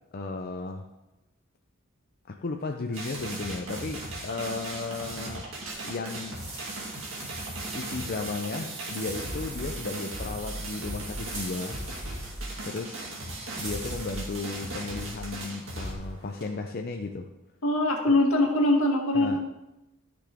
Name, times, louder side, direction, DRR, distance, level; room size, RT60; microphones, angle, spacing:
voice 1, 0.1-0.9 2.3-5.5 5.8-6.4 7.7-11.8 12.6-13.0 13.6-17.3 19.1-19.4, left 3 dB, 45° left, 3 dB, 0.5 m, -34 dB
sound 1, 2.9-15.9, right 1 dB, 65° right, 2.2 m, -37 dB
sound 2, 5.2-5.3 5.7-6.2 6.7-12.3, right 4 dB, 90° right, 2.2 m, -44 dB
sound 3, 6.1-16.5, right 2 dB, 30° right, 3.7 m, -46 dB
voice 2, 17.6-19.4, left 1 dB, 80° left, 0 dB, 1.9 m, -22 dB
13.0 x 6.1 x 3.5 m, 0.96 s
head